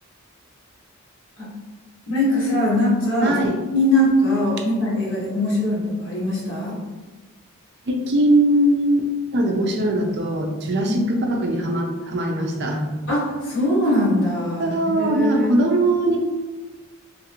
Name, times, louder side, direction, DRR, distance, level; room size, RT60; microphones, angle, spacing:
voice 1, 2.1-3.4 3.7-6.8 10.9-11.0 13.1-15.6, left 1 dB, 65° left, -7 dB, 1.3 m, -21 dB
voice 2, 3.2-3.6 7.9-12.8 14.6-16.2, right 1 dB, 50° right, 2 dB, 0.5 m, -21 dB
3.2 x 2.5 x 2.9 m, 1.2 s
head